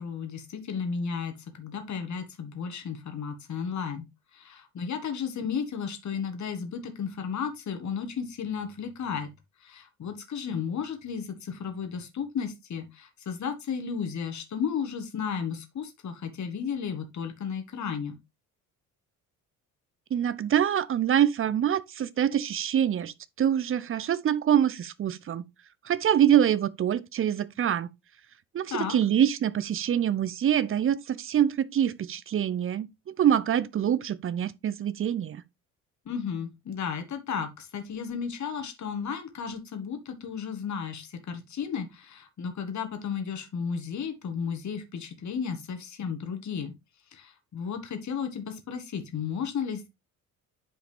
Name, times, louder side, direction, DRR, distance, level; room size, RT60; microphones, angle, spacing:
voice 1, 0.0-4.1 4.3-9.3 9.6-18.2 28.7-29.0 36.0-46.7 47.1-49.9, left 6 dB, 35° left, 1.6 m, -34 dB
voice 2, 20.1-25.4 25.8-27.9 28.5-35.4, right 10 dB, 30° right, 0.6 m, -25 dB
9.0 x 5.0 x 3.3 m
figure-of-eight pair, 45°, 46 cm